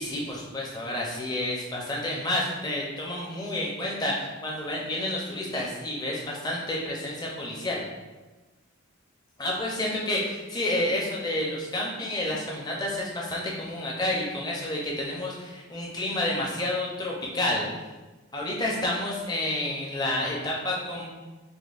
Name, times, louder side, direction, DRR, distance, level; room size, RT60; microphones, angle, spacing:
voice 1, 0.0-7.8 9.4-17.7 18.3-21.1, left 1 dB, 20° left, -3 dB, 0.5 m, -30 dB
5.1 x 2.1 x 2.4 m, 1.2 s
head